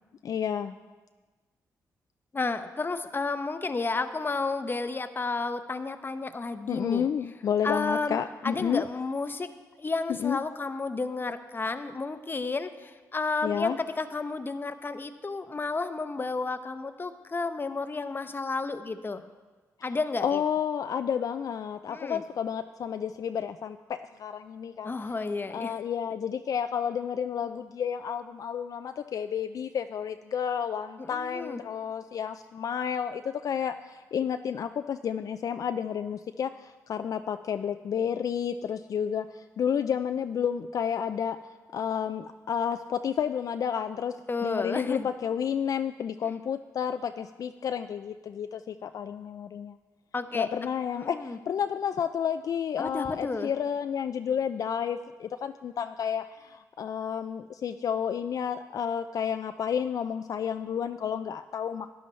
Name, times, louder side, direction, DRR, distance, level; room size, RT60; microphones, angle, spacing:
voice 1, 0.2-0.8 6.7-8.8 10.1-10.4 13.4-13.8 19.8-24.9 25.5-41.4 41.7-49.8 50.3-61.9, left 8 dB, 60° left, 9 dB, 0.3 m, -31 dB
voice 2, 2.3-7.1 7.6-8.2 8.4-9.5 9.8-19.2 19.8-20.4 21.9-22.2 24.8-25.8 31.0-31.6 44.3-45.1 50.1-50.5 51.0-51.4 52.8-53.5, left 3 dB, 30° left, 10 dB, 0.7 m, -32 dB
12.5 x 10.0 x 3.2 m, 1.3 s
cardioid pair, 60°, 7 cm